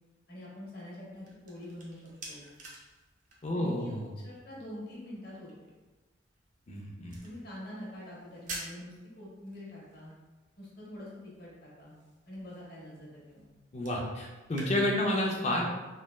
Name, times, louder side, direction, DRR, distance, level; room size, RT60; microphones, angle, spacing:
voice 1, 0.3-2.5 3.5-4.0 4.2-5.5 7.2-10.1 10.6-11.9 12.2-13.5, left 1 dB, 50° left, -5 dB, 0.8 m, -45 dB
sound 1, 1.0-14.7, right 2 dB, 40° right, 0.5 m, -51 dB
voice 2, 3.4-4.1 6.7-7.2 13.7-15.6, left 1 dB, 35° left, -1 dB, 0.4 m, -30 dB
3.2 x 2.1 x 2.2 m, 1.2 s
head